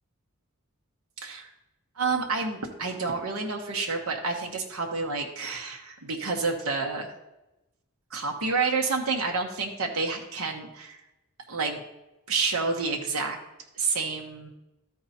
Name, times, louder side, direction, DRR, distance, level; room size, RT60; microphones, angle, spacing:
voice 1, 2.0-7.1 8.1-11.0 11.5-11.8 12.3-13.4 13.7-14.5, right 4 dB, 80° right, 1 dB, 1.1 m, -29 dB
13.0 x 4.7 x 4.2 m, 0.97 s
head